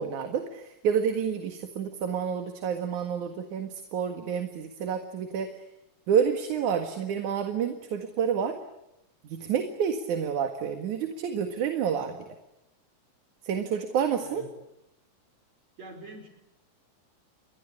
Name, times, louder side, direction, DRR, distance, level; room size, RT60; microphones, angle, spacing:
voice 1, 0.0-5.5 6.1-8.6 9.3-12.2 13.4-14.4, right 7 dB, 75° right, 6 dB, 3.3 m, -29 dB
voice 2, 15.8-16.3, right 2 dB, 60° right, 5 dB, 6.8 m, -43 dB
30.0 x 23.0 x 8.7 m, 0.87 s
omnidirectional pair, 3.6 m